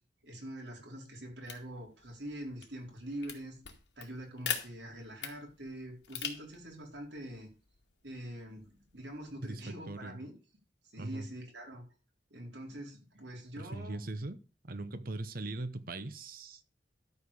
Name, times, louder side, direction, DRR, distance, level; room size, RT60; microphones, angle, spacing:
voice 1, 0.2-3.6 4.0-7.5 8.0-10.3 10.8-11.8 12.3-14.0, right 1 dB, 80° right, 4.1 m, -44 dB
sound 1, 1.4-9.3, left 8 dB, 85° left, 2.2 m, -44 dB
voice 2, 9.4-10.2 11.0-11.3 13.6-14.4 14.6-16.6, right 2 dB, 55° right, 1.0 m, -40 dB
12.5 x 4.8 x 7.0 m
head